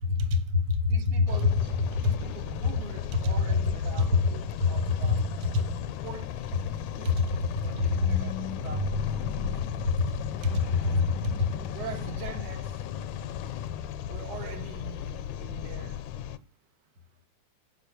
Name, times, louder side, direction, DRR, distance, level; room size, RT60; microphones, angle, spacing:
voice 1, 0.0-1.2 1.9-2.0 4.6-4.7 7.8-8.2 9.8-9.9 10.4-11.5, left 4 dB, 50° right, 1.5 m, -25 dB
voice 2, 0.8-1.6 2.0-5.3 6.0-6.7 7.0-9.0 11.7-12.8 14.1-16.1, right 7 dB, 75° right, 2.7 m, -43 dB
sound 1, 1.3-16.4, left 10 dB, 75° left, 2.0 m, -36 dB
Squeak, 6.5-12.9 13.7-13.8, left 4 dB, 50° left, 1.3 m, -37 dB
16.0 x 5.8 x 7.0 m
omnidirectional pair, 3.6 m